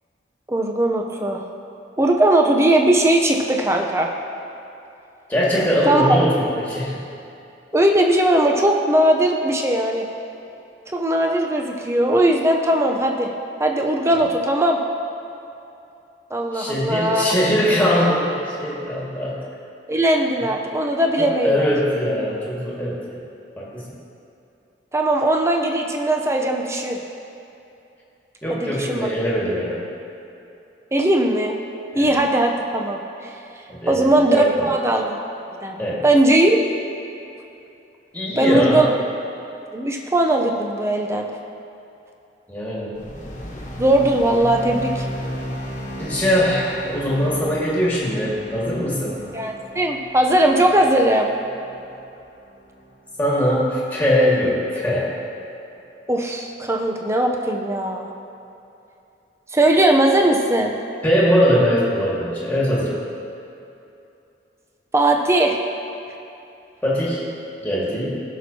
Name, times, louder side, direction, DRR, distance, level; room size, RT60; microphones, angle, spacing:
voice 1, 0.5-1.5 2.0-4.1 5.8-6.2 7.7-10.0 10.9-13.3 13.6-14.8 16.3-17.3 19.9-21.7 24.9-27.0 28.5-29.1 30.9-31.6 31.9-33.3 33.9-35.2 35.6-35.8 36.0-36.6 38.4-38.9 39.7-41.3 43.8-45.1 49.3-51.3 56.1-58.1 59.5-60.8 64.9-65.6, right 1 dB, 15° right, 2 dB, 0.6 m, -19 dB
voice 2, 5.3-7.0 16.5-19.4 21.2-23.2 23.6-23.8 28.4-29.9 31.9-32.2 33.7-34.7 35.8-36.0 38.1-38.9 42.5-42.9 46.0-49.2 53.2-55.1 61.0-62.9 66.8-67.3 67.6-68.2, equal, 10° left, -7 dB, 1.9 m, -21 dB
sound 1, 42.9-53.4, equal, 45° left, 1.4 m, -35 dB
16.5 x 6.1 x 2.8 m, 2.8 s
head